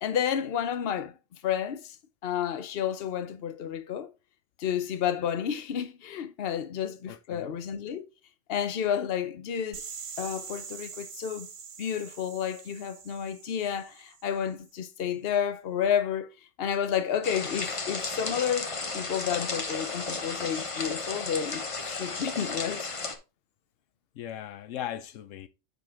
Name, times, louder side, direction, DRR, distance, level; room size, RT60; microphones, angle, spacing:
voice 1, 0.0-1.2 1.4-2.0 2.2-4.1 4.6-8.0 8.5-9.8 10.2-11.5 11.8-16.3 16.6-22.9, left 8 dB, 55° left, 1.0 m, -31 dB
voice 2, 7.1-7.5 24.1-25.5, left 10 dB, 80° left, 1.0 m, -38 dB
sound 1, 9.7-14.5, right 6 dB, 85° right, 1.4 m, -44 dB
sound 2, 17.2-23.2, left 3 dB, 30° left, 0.9 m, -34 dB
9.3 x 5.2 x 3.6 m
omnidirectional pair, 1.3 m